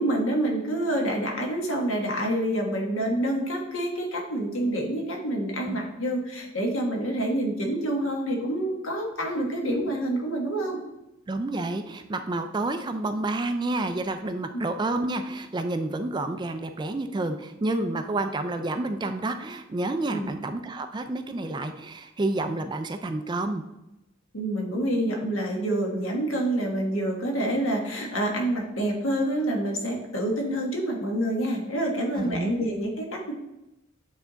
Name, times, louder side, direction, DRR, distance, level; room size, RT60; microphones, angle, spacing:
voice 1, 0.0-10.8 14.5-14.6 20.1-20.3 24.3-33.3, right 1 dB, 85° left, 1 dB, 1.3 m, -27 dB
voice 2, 9.3-9.8 11.3-23.6 32.1-32.5, right 2 dB, 20° right, 8 dB, 0.3 m, -29 dB
8.4 x 3.5 x 3.9 m, 0.93 s
head